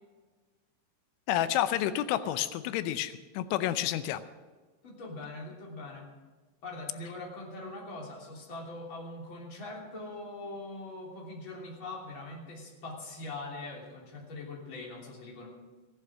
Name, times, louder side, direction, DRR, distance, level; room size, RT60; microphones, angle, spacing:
voice 1, 1.3-4.2, left 12 dB, 90° left, 12 dB, 3.2 m, -30 dB
voice 2, 4.8-6.1 6.6-15.5, left 2 dB, 30° left, -2 dB, 3.3 m, -42 dB
16.0 x 11.0 x 6.2 m, 1.3 s
omnidirectional pair, 5.3 m